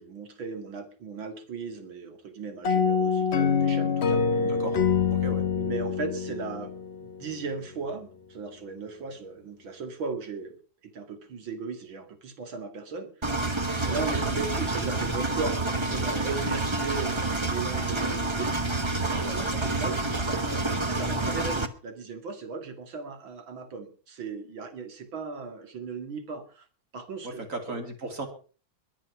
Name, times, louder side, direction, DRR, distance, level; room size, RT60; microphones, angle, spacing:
voice 1, 0.0-4.4 5.6-6.7 7.0-10.6 10.8-13.3 13.9-18.8 19.1-26.7 26.9-27.8, right 4 dB, 75° right, 8 dB, 3.0 m, -37 dB
sound 1, 2.6-7.3, left 6 dB, 50° left, 0.8 m, -25 dB
voice 2, 4.4-4.7 5.1-5.4 13.9-14.0 19.2-19.5 27.2-28.3, right 2 dB, 40° right, 5 dB, 3.2 m, -36 dB
Engine, 13.2-21.7, right 2 dB, 25° right, 0.7 m, -28 dB
22.0 x 7.6 x 5.9 m, 0.39 s
omnidirectional pair, 2.2 m